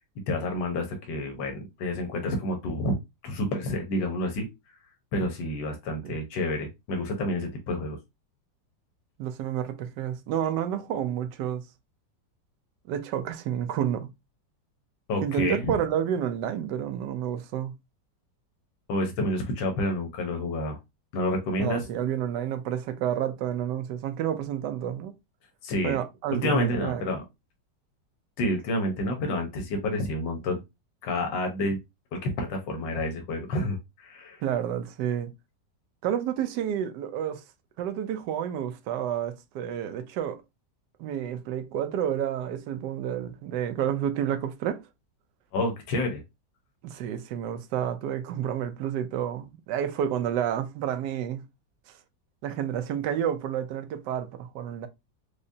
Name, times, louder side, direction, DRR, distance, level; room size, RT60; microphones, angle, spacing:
voice 1, 0.3-2.9 3.2-4.5 5.1-8.0 15.1-15.6 18.9-20.8 21.1-21.8 25.6-26.0 26.3-27.2 28.4-30.6 31.0-31.8 32.1-34.4 45.5-46.2, left 1 dB, 80° left, 1.6 m, -29 dB
voice 2, 9.2-11.6 12.9-14.1 15.2-17.7 21.6-25.1 25.8-27.0 34.4-35.3 36.0-37.4 37.8-40.4 41.0-44.8 46.8-51.4 52.4-54.9, right 9 dB, 75° right, 1.2 m, -30 dB
4.8 x 2.1 x 2.6 m
omnidirectional pair, 2.0 m